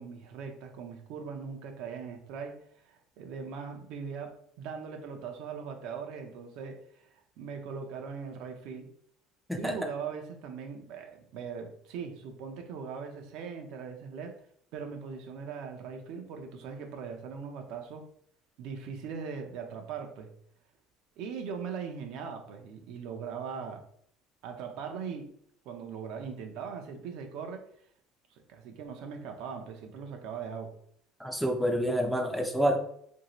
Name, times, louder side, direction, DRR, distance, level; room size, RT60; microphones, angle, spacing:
voice 1, 0.0-7.1 7.4-8.9 9.6-14.4 14.7-18.1 18.6-20.3 21.2-23.8 24.4-25.3 25.7-27.7 28.3-30.8, right 6 dB, 65° right, 5 dB, 0.5 m, -40 dB
voice 2, 31.2-32.8, equal, ahead, 3 dB, 0.4 m, -28 dB
3.1 x 2.6 x 2.9 m, 0.66 s
cardioid pair, 145°, 0 cm